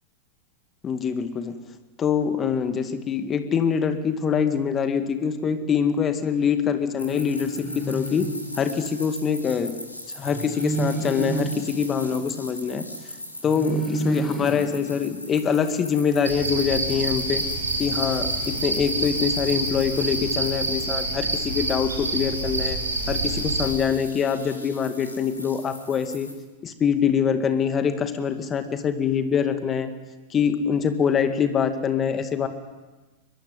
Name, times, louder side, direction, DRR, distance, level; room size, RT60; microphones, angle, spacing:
voice 1, 0.8-1.6 2.0-9.7 10.1-12.8 13.4-17.4 17.8-22.8 23.1-26.3 26.6-29.9 30.3-32.5, left 7 dB, 25° left, 9 dB, 2.1 m, -24 dB
sound 1, 7.0-26.3, left 1 dB, 85° left, 4.8 m, -40 dB
sound 2, 7.0-9.1 10.2-12.9 13.4-15.7, right 3 dB, ahead, 5.8 m, -32 dB
sound 3, 16.2-23.7, right 2 dB, 75° right, 6.2 m, -27 dB
23.0 x 22.5 x 9.6 m, 1.2 s
figure-of-eight pair, 90°, 0 cm